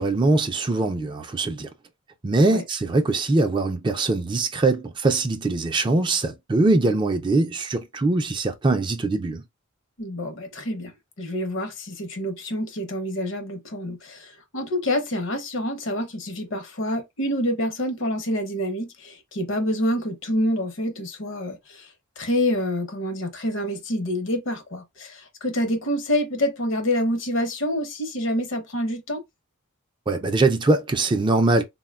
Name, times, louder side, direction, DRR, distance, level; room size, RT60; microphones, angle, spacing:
voice 1, 0.0-1.7 2.2-9.4 30.1-31.6, right 2 dB, 20° right, 0.3 m, -22 dB
voice 2, 10.0-10.9 11.2-21.9 22.2-29.2, equal, 60° left, 0.7 m, -27 dB
3.7 x 2.1 x 2.2 m
head